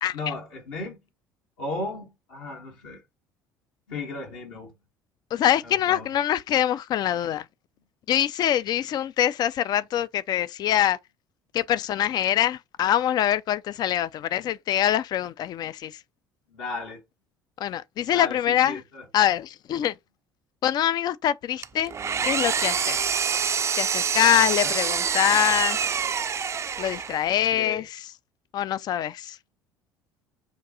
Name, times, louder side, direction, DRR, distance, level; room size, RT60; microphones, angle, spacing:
voice 1, 0.1-1.0 1.6-3.0 3.9-4.7 5.6-6.1 16.5-17.0 18.1-19.1 24.2-24.7 27.5-27.8, left 3 dB, 65° left, 1.4 m, -35 dB
voice 2, 5.3-7.5 8.1-11.0 11.5-16.0 17.6-18.8 19.1-19.9 20.6-21.9 22.2-23.2 23.8-25.9 26.8-28.0 28.5-29.4, left 11 dB, 40° left, 0.4 m, -24 dB
Engine, 21.6-27.3, right 7 dB, 25° right, 0.4 m, -26 dB
5.8 x 2.5 x 2.8 m
figure-of-eight pair, 60°, 10 cm